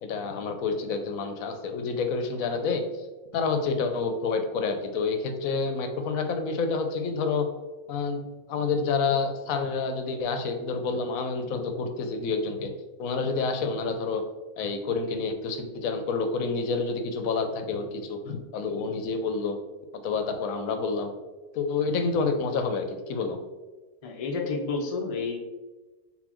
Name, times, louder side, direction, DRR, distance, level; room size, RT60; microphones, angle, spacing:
voice 1, 0.0-2.8 3.3-7.5 7.9-8.2 8.5-12.7 13.0-14.2 14.6-19.6 20.0-21.1 21.5-23.4, left 4 dB, 75° left, 6 dB, 1.0 m, -28 dB
voice 2, 24.0-25.4, left 4 dB, 55° left, 1 dB, 0.4 m, -30 dB
4.0 x 3.8 x 3.0 m, 1.2 s
omnidirectional pair, 1.5 m